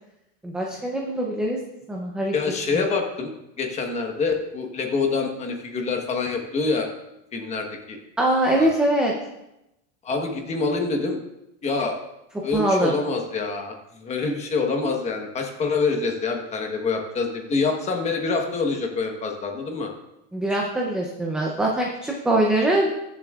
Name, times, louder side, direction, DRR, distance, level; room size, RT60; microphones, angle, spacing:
voice 1, 0.4-1.6 1.9-2.3 8.2-9.1 12.5-12.9 20.3-22.9, right 1 dB, ahead, -2 dB, 0.5 m, -22 dB
voice 2, 2.3-3.3 3.6-6.9 7.3-8.0 8.5-8.7 10.0-11.2 11.6-12.0 12.4-19.9, left 4 dB, 20° left, 3 dB, 1.1 m, -26 dB
20.5 x 7.2 x 2.4 m, 0.89 s
supercardioid pair, 165°, 36 cm